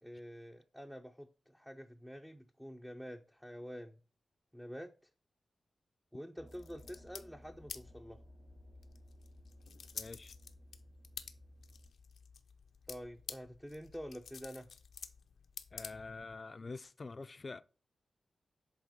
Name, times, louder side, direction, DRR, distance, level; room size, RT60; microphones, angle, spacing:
voice 1, 0.0-4.0 4.5-4.9 6.1-8.2 12.9-14.7, equal, 5° right, 0.7 m, -48 dB
sound 1, 6.4-11.9, equal, 20° right, 1.5 m, -58 dB
sound 2, 6.5-16.4, left 6 dB, 85° left, 0.7 m, -51 dB
voice 2, 9.9-10.3 15.7-17.6, left 3 dB, 45° left, 0.5 m, -46 dB
8.1 x 3.6 x 5.0 m
cardioid pair, 65°, 0 cm